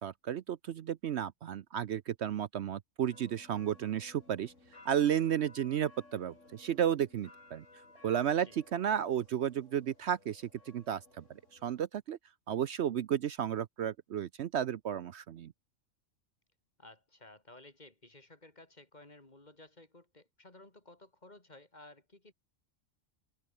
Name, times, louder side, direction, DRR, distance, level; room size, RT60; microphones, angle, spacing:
voice 1, 0.0-4.5 4.8-7.6 8.0-11.2 11.5-12.2 12.5-15.5, right 9 dB, 65° right, 0.9 m, -33 dB
sound 1, 3.1-11.8, left 2 dB, 70° left, 4.6 m, -59 dB
voice 2, 16.8-22.3, left 2 dB, 35° left, 3.2 m, -56 dB
omnidirectional pair, 1.3 m